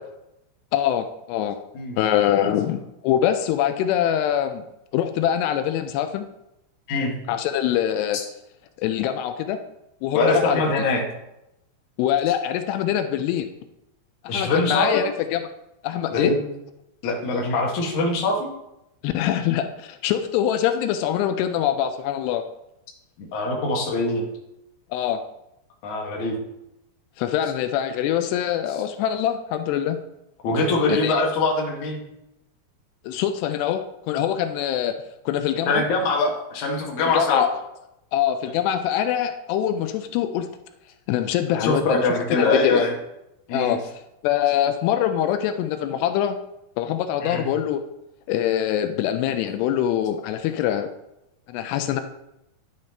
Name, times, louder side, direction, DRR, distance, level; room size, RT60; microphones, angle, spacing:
voice 1, 0.7-1.6 2.0-4.6 4.9-6.3 7.3-8.2 8.8-9.6 10.0-10.6 12.0-13.5 14.2-15.4 15.8-16.4 19.0-22.4 24.9-25.2 27.2-30.0 30.9-31.2 33.1-35.0 35.3-35.8 37.0-37.5 38.1-40.5 41.1-42.8 43.5-43.8 44.2-46.4 46.8-47.8 48.3-50.9 51.5-52.0, left 10 dB, 85° left, 8 dB, 2.7 m, -24 dB
voice 2, 10.1-11.0 14.3-15.1 16.1-16.4 17.0-18.5 23.2-24.3 25.8-26.4 30.4-32.0 35.7-37.4 41.5-42.9 43.5-43.8 47.2-47.4, left 2 dB, 55° left, -1 dB, 2.5 m, -23 dB
10.5 x 9.5 x 2.9 m, 0.87 s
omnidirectional pair, 4.7 m